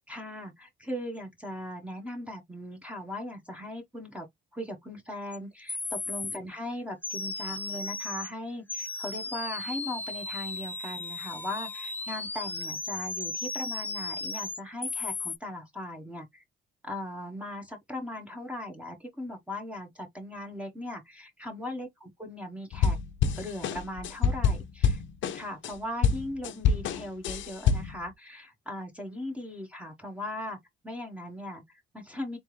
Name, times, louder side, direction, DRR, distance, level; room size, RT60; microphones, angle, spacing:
voice 1, 0.1-4.3 4.5-16.4 16.8-23.0 23.4-25.0 25.3-30.6 30.8-32.4, left 1 dB, 5° right, 1.0 m, -39 dB
sound 1, 5.3-5.4 5.7-6.4 7.0-8.3 8.7-15.4, left 3 dB, 10° left, 0.4 m, -35 dB
sound 2, 22.7-25.7 26.0-28.0, left 6 dB, 75° left, 0.6 m, -26 dB
3.8 x 3.3 x 3.1 m
cardioid pair, 90°, 20 cm